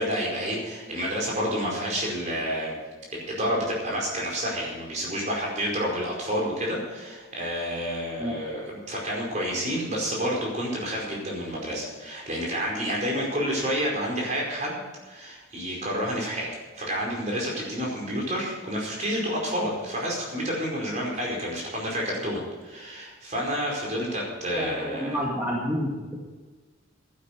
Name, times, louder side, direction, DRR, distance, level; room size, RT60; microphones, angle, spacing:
voice 1, 0.0-2.7 3.1-16.5 16.8-25.2, equal, 35° right, -2 dB, 4.9 m, -29 dB
voice 2, 24.5-25.9, equal, 10° right, -4 dB, 1.8 m, -29 dB
11.5 x 11.0 x 6.6 m, 1.4 s
head